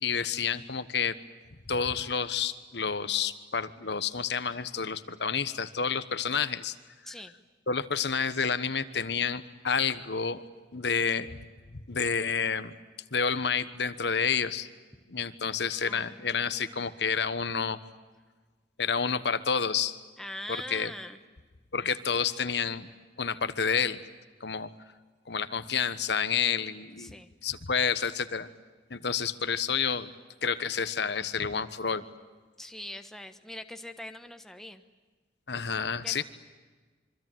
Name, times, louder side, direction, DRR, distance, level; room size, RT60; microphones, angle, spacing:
voice 1, 0.0-1.1 1.7-6.7 7.7-10.4 10.7-11.4 11.7-12.7 13.1-14.7 15.1-17.8 18.8-20.0 20.5-20.9 21.7-22.9 23.2-24.0 24.4-24.7 25.3-27.1 27.4-28.5 28.9-30.1 30.4-32.0 35.5-36.2, left 6 dB, 70° left, 12 dB, 1.3 m, -29 dB
voice 2, 15.9-16.9 20.2-21.2 27.0-27.3 32.6-34.8 36.0-36.2, left 1 dB, ahead, 7 dB, 1.2 m, -42 dB
26.5 x 24.5 x 9.2 m, 1.3 s
head